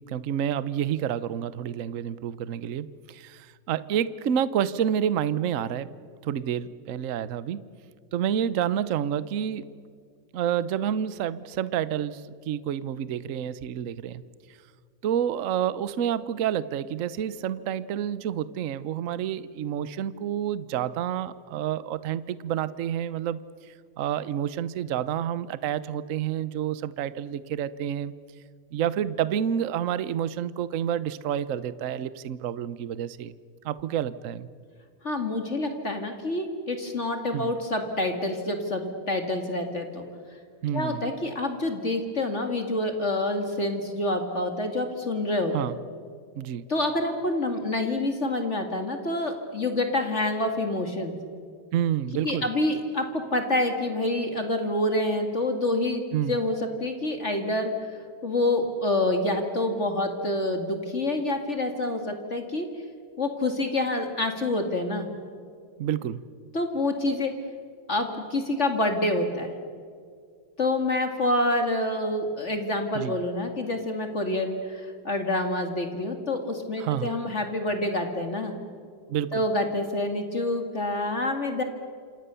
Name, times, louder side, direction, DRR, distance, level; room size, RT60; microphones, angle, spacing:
voice 1, 0.1-5.9 6.2-7.6 8.1-9.7 10.3-14.2 15.0-23.4 23.7-28.1 28.7-33.3 33.6-34.5 37.3-37.5 40.6-41.1 45.5-45.7 46.4-46.7 51.7-52.5 56.1-56.4 65.8-66.2 72.9-73.2 76.8-77.2 79.1-79.4, right 9 dB, 55° right, 16 dB, 0.9 m, -29 dB
voice 2, 35.0-40.1 40.7-45.8 46.7-51.1 52.2-57.9 58.2-62.7 63.2-65.1 66.5-67.3 67.9-69.5 70.6-78.5 79.3-81.6, left 1 dB, 35° left, 5 dB, 2.3 m, -27 dB
28.0 x 27.5 x 6.9 m, 2.2 s
omnidirectional pair, 2.3 m